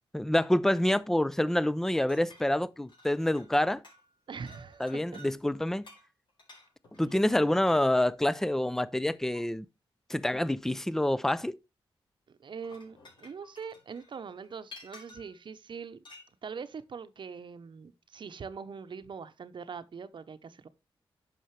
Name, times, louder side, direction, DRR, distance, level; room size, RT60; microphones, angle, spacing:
voice 1, 0.1-3.8 4.8-5.9 7.0-9.7 10.1-11.6, left 1 dB, 5° left, 0.5 m, -27 dB
sound 1, 1.9-3.6 3.8-4.2 4.5-5.3 5.8-8.1 9.3-9.4 12.4-15.4 16.0-16.3, left 2 dB, 55° left, 5.2 m, -54 dB
voice 2, 4.3-5.0 12.3-16.0 16.4-20.7, right 6 dB, 55° right, 0.8 m, -42 dB
10.5 x 6.4 x 3.2 m
wide cardioid pair, 100°, 10 cm